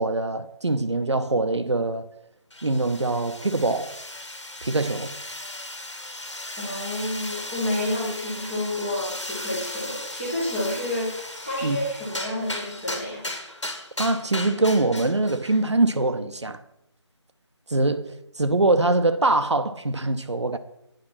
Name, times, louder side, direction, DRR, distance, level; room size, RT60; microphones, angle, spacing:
voice 1, 0.0-2.1 2.6-3.9 4.6-5.1 11.6-11.8 14.0-16.6 17.7-20.6, right 2 dB, 70° right, 0.8 m, -23 dB
sound 1, 2.5-15.6, left 1 dB, 75° left, 1.8 m, -36 dB
voice 2, 6.6-13.2, left 1 dB, 5° left, 0.6 m, -29 dB
9.0 x 5.4 x 5.9 m
figure-of-eight pair, 165°, 15 cm